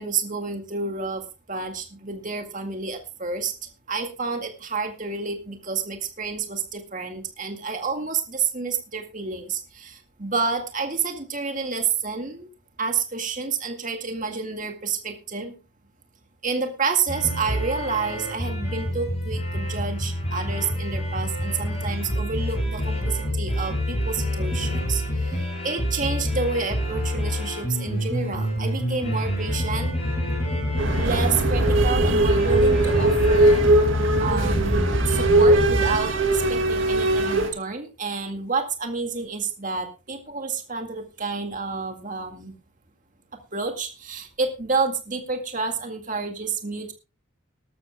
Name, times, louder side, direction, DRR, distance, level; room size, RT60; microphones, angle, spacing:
voice 1, 0.0-3.5 3.9-12.5 12.8-15.6 16.4-29.9 31.0-33.6 34.2-42.5 43.5-46.9, right 4 dB, 35° right, 5 dB, 2.0 m, -29 dB
sound 1, 17.1-36.0, equal, 30° left, 6.6 m, -27 dB
sound 2, 30.8-37.5, right 2 dB, 60° right, 2.3 m, -20 dB
19.0 x 13.0 x 2.3 m, 0.29 s
head